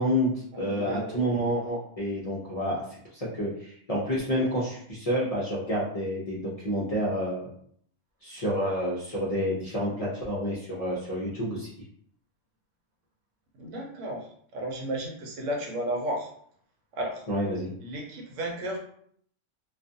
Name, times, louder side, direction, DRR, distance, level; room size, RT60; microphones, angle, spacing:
voice 1, 0.0-2.8 3.1-7.5 8.2-11.7 17.3-17.7, equal, 45° left, -7 dB, 0.5 m, -29 dB
voice 2, 0.5-1.3 13.6-14.3 14.5-16.3 16.9-17.2 17.8-18.8, right 1 dB, 80° right, 1 dB, 1.0 m, -33 dB
2.4 x 2.3 x 2.6 m, 0.63 s
omnidirectional pair, 1.3 m